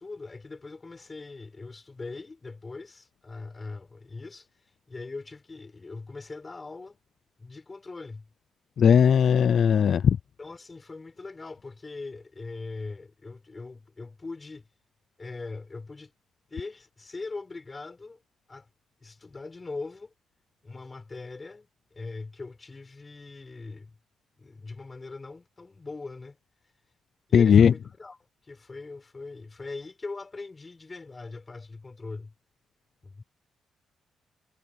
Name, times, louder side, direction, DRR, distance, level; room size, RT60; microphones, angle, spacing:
voice 1, 0.0-7.0 7.4-8.3 10.4-14.7 15.2-16.1 16.5-18.2 18.5-18.7 19.0-20.1 20.6-24.0 24.4-26.4 27.3-32.3 33.0-33.2, left 3 dB, 20° left, 6.2 m, -41 dB
voice 2, 8.8-10.2 27.3-27.7, left 7 dB, 45° left, 0.4 m, -18 dB
cardioid pair, 175°, 0 cm